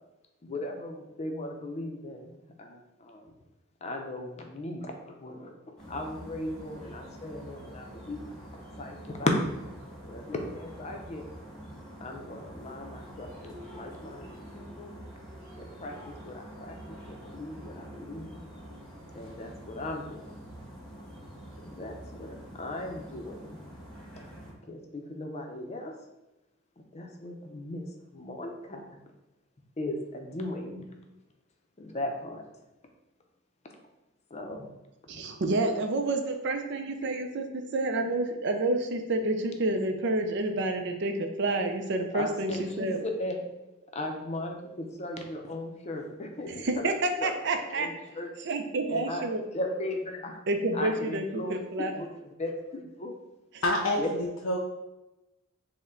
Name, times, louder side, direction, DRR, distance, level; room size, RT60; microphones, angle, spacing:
voice 1, 0.4-2.3 2.6-3.2 3.8-5.5 5.9-8.2 8.8-9.5 10.0-11.3 12.0-14.3 14.5-15.0 15.6-18.4 19.2-20.3 21.6-23.5 24.7-25.9 26.9-27.9 28.1-28.9 29.8-30.9 31.8-32.4 34.3-34.7 42.1-42.9 43.2-43.4 43.9-46.9 47.2-48.3 48.9-49.2 49.5-50.4 50.7-52.1 52.4-53.1 54.0-54.1, left 1 dB, 35° left, 3 dB, 0.6 m, -36 dB
sound 1, 5.8-24.5, equal, 5° left, 1.3 m, -46 dB
voice 2, 35.1-37.5 37.7-43.1 46.5-47.9 48.4-49.4 50.5-52.0 53.5-53.6, right 2 dB, 60° right, 6 dB, 0.5 m, -29 dB
voice 3, 53.6-54.6, left 1 dB, 85° left, -2 dB, 0.5 m, -27 dB
5.4 x 2.2 x 3.7 m, 0.98 s
head